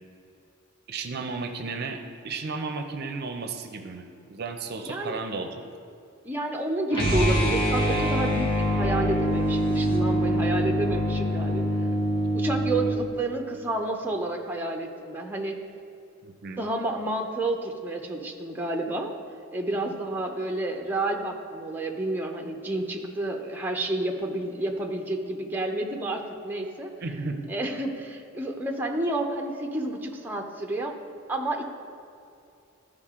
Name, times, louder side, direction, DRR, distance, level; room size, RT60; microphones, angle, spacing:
voice 1, 0.9-5.7 16.2-16.6 27.0-27.5, right 4 dB, 50° right, 6 dB, 0.6 m, -34 dB
voice 2, 4.8-5.2 6.2-11.7 12.3-15.6 16.5-19.1 19.5-26.9 27.5-30.9 31.3-31.6, right 2 dB, 10° right, 1 dB, 0.7 m, -30 dB
sound 1, 6.9-13.0, equal, 25° left, 1.6 m, -24 dB
13.5 x 4.9 x 3.7 m, 2.6 s
head